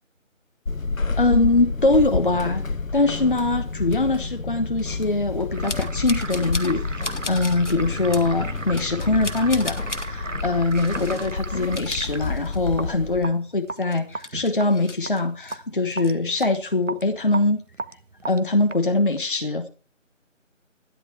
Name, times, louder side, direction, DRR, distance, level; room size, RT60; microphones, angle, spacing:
Walk footsteps / Squeak, 0.7-13.3, left 3 dB, 85° left, 1.0 m, -29 dB
voice 1, 1.2-2.6 2.9-17.6 18.3-19.7, left 2 dB, 40° left, 7 dB, 1.3 m, -23 dB
sound 1, 5.5-19.2, right 3 dB, 70° right, 1.2 m, -36 dB
sound 2, 5.7-6.8 7.0-7.8 8.1-8.3 8.7-10.1 10.7-11.3 11.6-12.8 13.1-13.2 13.7-15.6 15.9-16.5, left 2 dB, 65° left, 2.0 m, -36 dB
13.5 x 11.0 x 4.6 m, 0.36 s
figure-of-eight pair, 165°, 39 cm